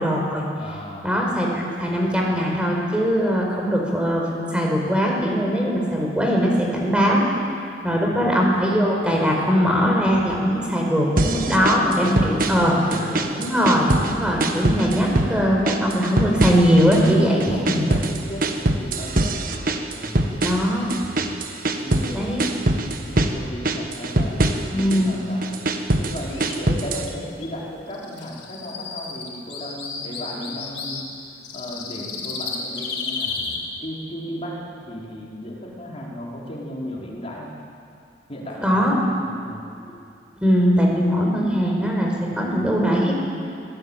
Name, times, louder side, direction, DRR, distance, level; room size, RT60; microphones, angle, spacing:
voice 1, 0.0-0.4 1.0-7.2 7.8-12.8 13.3-17.8 20.4-20.9 22.1-22.4 24.7-25.1 38.6-38.9 40.4-43.1, equal, 5° right, -1 dB, 4.8 m, -20 dB
voice 2, 0.6-1.1 8.0-8.4 11.2-13.4 17.0-20.4 21.8-22.5 23.0-25.5 26.0-31.0 31.5-37.5 38.3-39.6, equal, 35° left, -4 dB, 4.9 m, -35 dB
sound 1, 11.2-12.7 12.9-14.1 14.4-15.3 15.7-17.1 17.4-22.1 22.4-23.4 23.7-25.0 25.4-27.1, right 1 dB, 55° right, 1.5 m, -23 dB
sound 2, 26.2-26.5 27.1-27.2 27.4-27.5 27.9-31.0 31.4-33.6, left 5 dB, 85° left, 4.4 m, -32 dB
25.0 x 18.0 x 9.0 m, 2.4 s
head